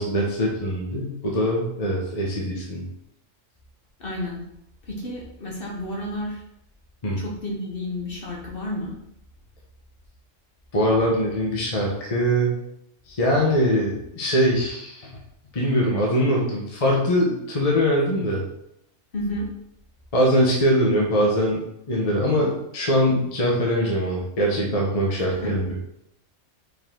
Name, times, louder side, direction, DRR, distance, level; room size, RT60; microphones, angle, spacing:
voice 1, 0.0-2.8 7.0-7.2 10.7-12.5 13.1-15.1 15.5-18.4 20.1-25.7, equal, 30° left, -2 dB, 1.1 m, -22 dB
voice 2, 4.0-4.4 4.9-6.4 7.2-8.9 19.1-19.5 25.3-25.5, left 1 dB, 45° left, -2 dB, 1.4 m, -31 dB
5.4 x 4.7 x 3.8 m, 0.78 s
omnidirectional pair, 1.3 m